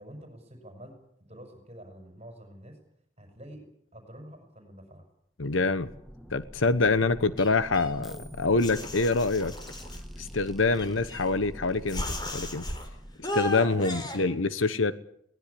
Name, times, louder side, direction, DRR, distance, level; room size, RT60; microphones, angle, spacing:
voice 1, 0.0-2.8 3.2-3.7 3.9-5.1, equal, 35° right, 4 dB, 6.1 m, -47 dB
voice 2, 5.4-5.9 6.3-9.5 10.2-12.0 12.3-12.6 13.2-14.9, left 3 dB, 90° left, 13 dB, 1.0 m, -25 dB
sound 1, 5.5-14.0, equal, ahead, 1.6 m, -45 dB
sound 2, 7.4-8.2 8.6-10.0 10.8-11.5 11.9-12.9 13.2-14.2, left 1 dB, 20° left, 4.0 m, -36 dB
22.0 x 19.0 x 8.5 m, 0.71 s
head